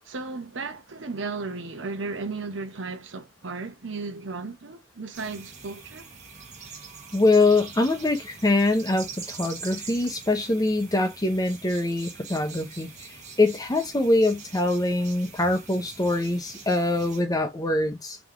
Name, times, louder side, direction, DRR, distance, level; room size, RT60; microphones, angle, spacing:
voice 1, 0.1-6.1, right 3 dB, 70° right, 0.8 m, -35 dB
sound 1, 5.1-17.2, right 5 dB, 40° right, 1.3 m, -43 dB
voice 2, 7.1-12.9 13.4-18.2, left 2 dB, 20° left, 0.7 m, -23 dB
3.5 x 3.0 x 3.6 m
head